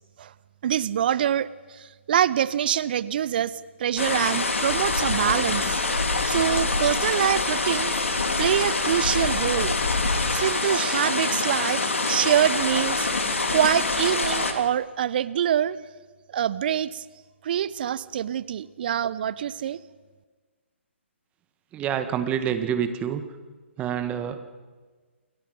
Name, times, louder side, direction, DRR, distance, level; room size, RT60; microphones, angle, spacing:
voice 1, 0.6-5.8 6.2-7.9 8.4-9.7 10.3-13.1 13.5-15.8 16.3-17.0 17.4-19.8, right 10 dB, 45° right, 18 dB, 0.9 m, -25 dB
sound 1, 4.0-14.5, left 3 dB, 80° left, 3.1 m, -25 dB
voice 2, 21.7-23.2 23.8-24.4, right 8 dB, 20° right, 9 dB, 1.8 m, -27 dB
29.5 x 21.5 x 5.5 m, 1.4 s
figure-of-eight pair, 135°, 7 cm